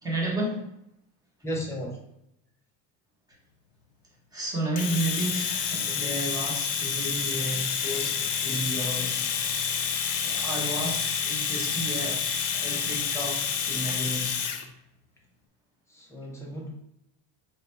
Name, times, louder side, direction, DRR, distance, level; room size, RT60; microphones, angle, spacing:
voice 1, 0.0-0.6 4.3-9.4 10.0-12.2 12.5-14.4, right 1 dB, 10° right, -4 dB, 0.8 m, -32 dB
voice 2, 1.4-2.0 15.9-16.8, equal, 10° left, -1 dB, 0.4 m, -34 dB
Domestic sounds home sounds, 4.8-14.6, left 7 dB, 65° left, 0.6 m, -29 dB
3.8 x 2.2 x 4.2 m, 0.80 s
cardioid pair, 170°, 38 cm